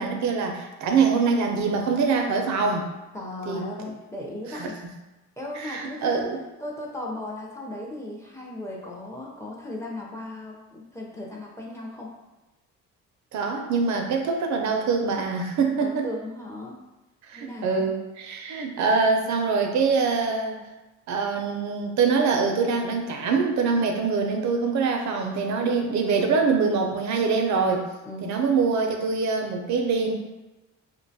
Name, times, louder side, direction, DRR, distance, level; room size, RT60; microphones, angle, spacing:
voice 1, 0.0-2.9 3.5-3.7 4.5-4.7 5.5-6.4 13.3-16.1 17.3-20.6 21.1-27.9 28.2-30.1, right 4 dB, 70° right, 3 dB, 0.5 m, -24 dB
voice 2, 3.1-4.8 5.4-6.2 6.6-12.2 15.8-16.8 17.3-17.9 25.6-25.7 28.0-28.4, left 1 dB, 10° left, -3 dB, 0.5 m, -36 dB
2.5 x 2.2 x 2.6 m, 1.1 s
cardioid pair, 90°, 30 cm